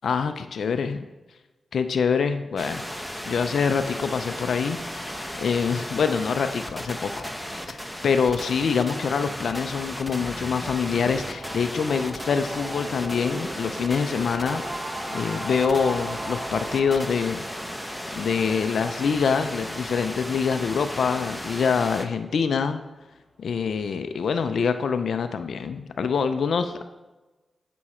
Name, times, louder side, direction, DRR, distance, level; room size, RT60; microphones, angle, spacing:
voice 1, 0.0-1.0 1.7-2.8 3.2-14.6 15.1-17.4 18.2-22.8 23.4-26.8, left 6 dB, 75° left, 9 dB, 0.4 m, -25 dB
sound 1, 2.6-22.1, equal, 5° left, 1.0 m, -35 dB
sound 2, 10.9-20.6, right 1 dB, 25° right, 1.3 m, -39 dB
8.4 x 6.1 x 4.3 m, 1.1 s
supercardioid pair, 45°, 0 cm